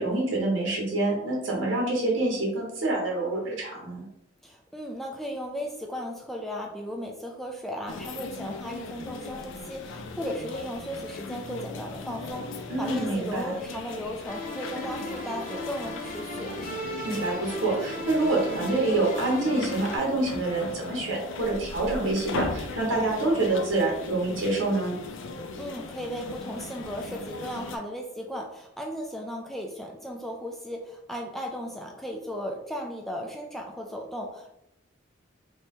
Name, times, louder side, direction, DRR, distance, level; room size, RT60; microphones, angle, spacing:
voice 1, 0.0-4.1 12.7-13.5 17.0-25.0, right 2 dB, 80° right, -2 dB, 1.0 m, -26 dB
voice 2, 4.4-16.6 25.6-34.5, equal, ahead, 1 dB, 0.3 m, -36 dB
sound 1, 7.9-27.8, left 4 dB, 75° left, 0.4 m, -38 dB
sound 2, 14.3-20.0, right 1 dB, 40° left, 0.9 m, -37 dB
3.2 x 2.9 x 3.3 m, 0.82 s
head